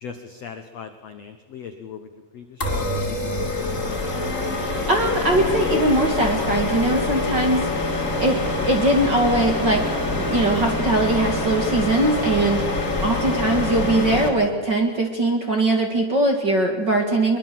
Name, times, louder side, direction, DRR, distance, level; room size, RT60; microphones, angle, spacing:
voice 1, 0.0-4.1 6.9-7.0, left 7 dB, 75° left, 7 dB, 1.5 m, -39 dB
sound 1, 2.6-14.3, left 2 dB, 20° left, 3.2 m, -25 dB
voice 2, 4.9-17.4, right 2 dB, 40° right, 3 dB, 1.8 m, -21 dB
22.5 x 22.0 x 7.7 m, 1.3 s
omnidirectional pair, 4.8 m